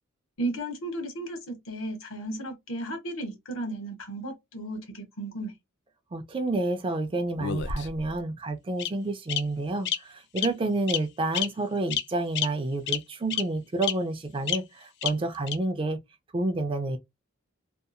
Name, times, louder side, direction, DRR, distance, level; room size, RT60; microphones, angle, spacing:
voice 1, 0.4-5.5, right 1 dB, 75° left, 1.0 m, -34 dB
voice 2, 6.1-16.0 16.3-17.0, right 2 dB, 25° right, 0.3 m, -29 dB
Bird vocalization bird call bird song, 7.4-8.1 8.8-8.9 9.3-9.4 9.9-10.0 10.4-10.5 10.9-11.0 11.3-11.5 11.9-12.0 12.4-12.5 12.9-13.0 13.3-13.4 13.8-13.9 14.5-14.6 15.0-15.1 15.5-15.6, left 10 dB, 55° left, 0.4 m, -28 dB
2.7 x 2.3 x 2.4 m
head